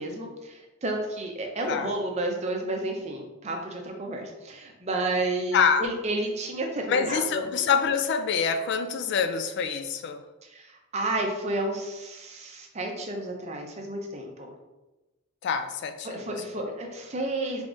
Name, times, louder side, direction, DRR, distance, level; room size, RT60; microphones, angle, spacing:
voice 1, 0.0-7.5 10.4-14.5 16.1-17.6, right 2 dB, 30° right, 2 dB, 0.6 m, -31 dB
voice 2, 5.5-5.9 6.9-10.2 15.4-16.3 16.6-16.8, left 6 dB, 55° left, 7 dB, 0.3 m, -26 dB
3.8 x 3.4 x 2.5 m, 1.1 s
head